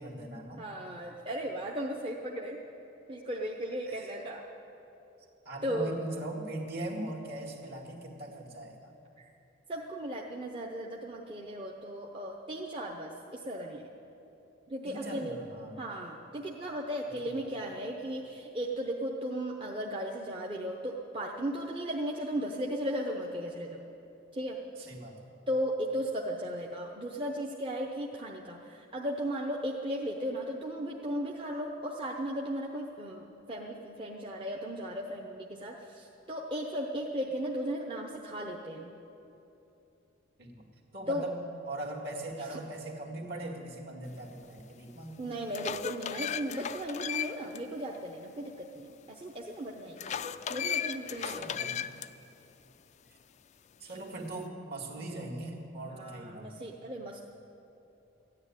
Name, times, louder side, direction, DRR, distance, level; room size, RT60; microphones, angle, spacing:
voice 1, 0.0-0.6 3.9-4.1 5.5-8.9 14.9-15.8 17.0-17.3 24.9-25.3 40.4-40.6 40.9-41.3 41.7-45.3 51.2-51.8 53.8-56.6, right 1 dB, 50° right, 0 dB, 2.1 m, -40 dB
voice 2, 0.6-2.6 3.1-4.5 5.6-6.0 9.2-9.3 9.7-13.9 14.7-15.4 15.8-23.8 24.3-24.9 25.5-38.9 41.1-41.3 42.5-42.6 45.2-50.2 50.5-51.8 53.8-54.0 55.9-57.2, equal, 25° right, -1 dB, 0.8 m, -36 dB
sound 1, 44.6-44.7 45.2-47.6 47.9-48.0 50.0-52.1, left 8 dB, 35° left, 0.3 m, -35 dB
14.0 x 9.8 x 9.7 m, 2.9 s
head